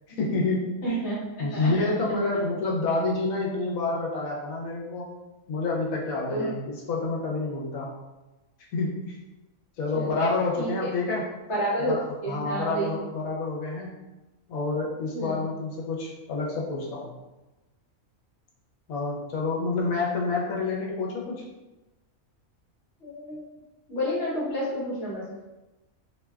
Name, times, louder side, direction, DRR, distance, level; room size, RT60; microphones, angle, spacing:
voice 1, 0.2-1.0 1.4-5.1 5.5-7.9 8.7-9.2 9.8-11.3 11.9-14.0 14.5-17.1 18.9-21.4, left 3 dB, 80° left, -3 dB, 1.1 m, -28 dB
voice 2, 0.8-1.2 1.5-2.1 6.3-6.5 9.9-10.2 10.6-10.7 11.5-11.9 12.2-13.0 15.1-15.5 23.0-23.5 23.9-25.2, equal, 55° left, -7 dB, 1.2 m, -30 dB
2.6 x 2.2 x 3.4 m, 1.0 s
omnidirectional pair, 1.4 m